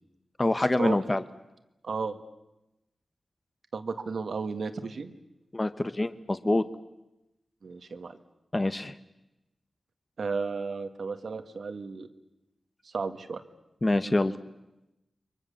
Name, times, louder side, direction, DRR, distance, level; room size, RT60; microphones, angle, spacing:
voice 1, 0.4-1.2 5.5-6.6 8.5-8.9 13.8-14.3, left 2 dB, 30° left, 11 dB, 1.2 m, -25 dB
voice 2, 1.8-2.2 3.7-5.1 7.6-8.2 10.2-12.1 12.8-13.4, right 4 dB, 75° right, 8 dB, 1.8 m, -33 dB
29.5 x 23.5 x 7.2 m, 0.95 s
cardioid pair, 60°, 0 cm